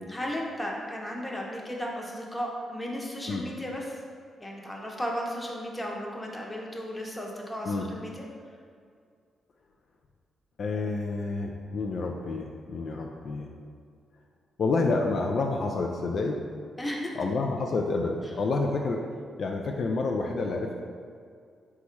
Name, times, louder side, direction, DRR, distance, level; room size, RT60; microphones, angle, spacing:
voice 1, 0.1-4.0 4.4-8.2 16.8-17.1, equal, 15° left, -1 dB, 0.8 m, -35 dB
voice 2, 10.6-13.5 14.6-16.4 17.1-19.0 19.4-20.8, left 3 dB, 65° left, 1 dB, 0.3 m, -29 dB
4.1 x 2.3 x 4.4 m, 2.2 s
supercardioid pair, 60°, 0 cm